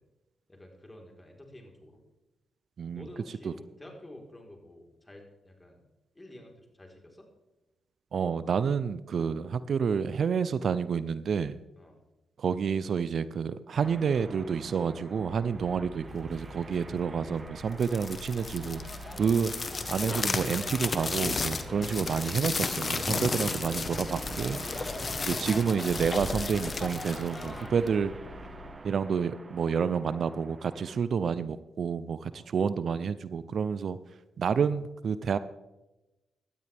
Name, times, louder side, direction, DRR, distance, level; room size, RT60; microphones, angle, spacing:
voice 1, 0.5-2.0 2.9-5.8 6.1-7.3 9.3-9.4 11.8-12.0 16.6-16.8 19.2-19.4 24.8-25.1 32.3-32.5, left 1 dB, 20° left, 1 dB, 4.2 m, -50 dB
voice 2, 8.1-11.6 12.4-18.9 19.2-19.5 19.9-24.6 25.2-28.1 28.8-34.0 34.4-35.4, right 6 dB, 65° right, 15 dB, 0.6 m, -29 dB
sound 1, 13.8-31.0, right 2 dB, 35° right, 1.0 m, -46 dB
sound 2, 15.1-28.8, left 2 dB, 70° left, 1.7 m, -47 dB
sound 3, 17.7-28.0, left 4 dB, 45° left, 1.3 m, -34 dB
17.0 x 12.5 x 3.5 m, 1.0 s
cardioid pair, 60°, 0 cm